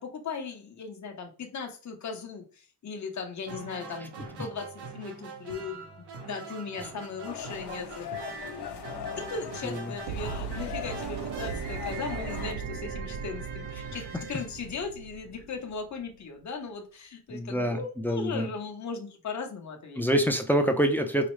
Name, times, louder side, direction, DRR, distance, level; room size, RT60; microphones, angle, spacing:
voice 1, 0.0-4.1 4.4-8.1 9.2-14.0 14.3-20.0, left 5 dB, 45° left, 3 dB, 0.9 m, -38 dB
sound 1, 3.4-15.3, right 4 dB, 80° right, 1.0 m, -43 dB
sound 2, 7.2-12.5, left 7 dB, 75° left, 0.9 m, -40 dB
sound 3, 10.0-16.0, right 7 dB, 65° right, 0.5 m, -38 dB
voice 2, 17.3-18.5 20.0-21.3, equal, 5° left, 5 dB, 0.5 m, -26 dB
4.9 x 2.0 x 3.1 m, 0.40 s
cardioid pair, 100°, 40 cm